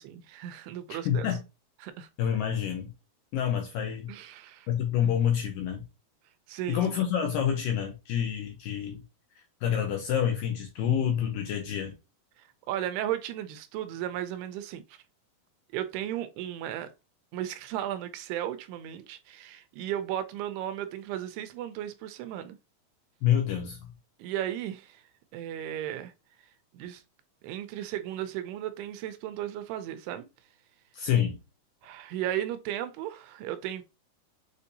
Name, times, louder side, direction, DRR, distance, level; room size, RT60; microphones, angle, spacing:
voice 1, 0.0-1.3 1.8-2.1 4.1-4.7 5.0-5.2 6.5-6.9 12.4-15.0 15.7-16.9 17.3-22.6 24.2-25.0 25.3-26.1 26.7-27.0 27.4-30.3 31.8-33.8, right 11 dB, 85° right, 2.5 m, -35 dB
voice 2, 0.9-1.4 2.2-2.9 3.3-4.1 4.7-5.8 6.7-9.0 9.6-12.0 23.2-23.9 30.9-31.4, left 9 dB, 80° left, 2.0 m, -27 dB
6.7 x 2.6 x 2.7 m
omnidirectional pair, 4.7 m